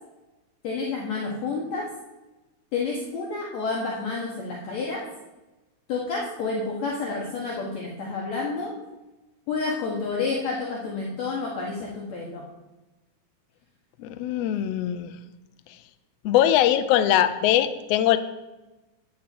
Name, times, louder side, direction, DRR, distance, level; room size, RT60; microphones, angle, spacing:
voice 1, 0.6-1.9 2.7-5.0 5.9-8.7 9.5-12.4, left 4 dB, 65° left, -3 dB, 2.4 m, -29 dB
voice 2, 14.0-15.1 16.2-18.2, left 11 dB, 90° left, 11 dB, 1.4 m, -21 dB
9.6 x 5.4 x 7.5 m, 1.1 s
omnidirectional pair, 3.5 m